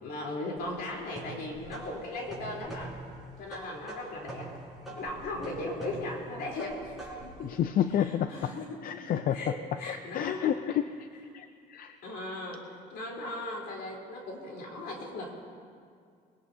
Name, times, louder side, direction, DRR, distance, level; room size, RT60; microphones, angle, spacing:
voice 1, 0.0-2.9 3.4-4.5 4.9-7.5 8.0-9.0 9.3-10.4 12.0-15.3, left 2 dB, 75° left, -2 dB, 3.8 m, -38 dB
sound 1, 0.6-7.4, right 2 dB, ahead, 4.7 m, -44 dB
voice 2, 7.4-8.5 8.8-9.5 9.9-11.1 11.3-12.0, left 10 dB, 55° left, 10 dB, 0.5 m, -30 dB
21.5 x 17.5 x 2.8 m, 2.2 s
cardioid pair, 110°, 17 cm